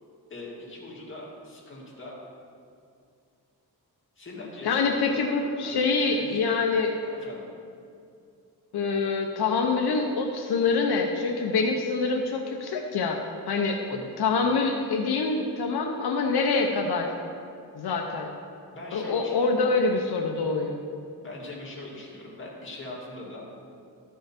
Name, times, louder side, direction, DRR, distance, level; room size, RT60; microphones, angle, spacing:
voice 1, 0.3-2.2 4.2-5.8 6.1-6.5 7.0-7.5 13.9-14.1 18.7-19.6 21.2-23.4, left 2 dB, 30° left, -4 dB, 2.1 m, -42 dB
voice 2, 4.6-7.0 8.7-13.2 13.5-17.1 17.7-18.3 18.9-20.8, left 4 dB, 80° left, 2 dB, 0.8 m, -25 dB
13.0 x 5.5 x 4.3 m, 2.4 s
wide cardioid pair, 125°, 38 cm